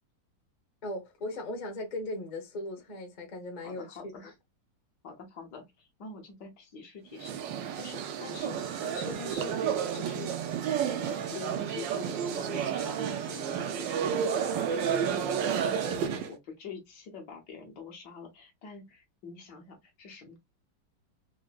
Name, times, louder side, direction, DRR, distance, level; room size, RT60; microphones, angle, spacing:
voice 1, 0.8-4.0, left 1 dB, 35° left, 0.8 m, -38 dB
voice 2, 3.6-4.3 5.0-9.5 9.9-10.4 10.8-14.2 14.5-20.4, left 5 dB, 65° left, 1.5 m, -45 dB
sound 1, 7.2-16.3, right 8 dB, 80° right, 1.3 m, -31 dB
4.7 x 2.1 x 2.2 m
omnidirectional pair, 2.0 m